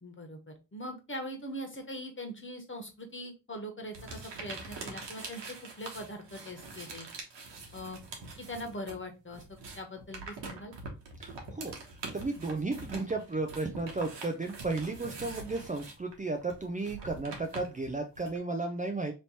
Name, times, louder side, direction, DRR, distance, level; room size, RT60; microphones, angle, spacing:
voice 1, 0.0-7.1 7.7-8.0 8.4-9.4 9.8-10.7, equal, 25° left, 4 dB, 1.5 m, -41 dB
sound 1, 3.9-9.0 9.3-18.4, right 3 dB, 70° right, 1.3 m, -44 dB
voice 2, 11.2-11.7 12.1-19.1, right 3 dB, 15° right, 3 dB, 0.7 m, -34 dB
3.1 x 2.9 x 4.2 m, 0.30 s
hypercardioid pair, 40°, 45 cm